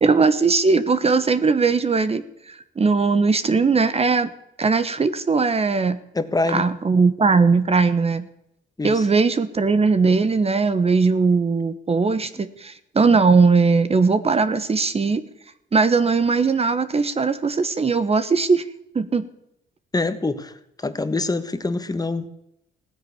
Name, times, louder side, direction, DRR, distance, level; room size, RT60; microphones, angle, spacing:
voice 1, 0.0-4.3 4.6-6.0 6.5-8.3 8.8-15.2 15.7-18.6 18.9-19.2, right 4 dB, 30° right, 1.2 m, -19 dB
voice 2, 6.1-6.7 8.8-9.1 19.9-20.5 20.8-22.3, left 3 dB, 20° left, 1.4 m, -24 dB
16.5 x 10.0 x 8.5 m
cardioid pair, 90°, 20 cm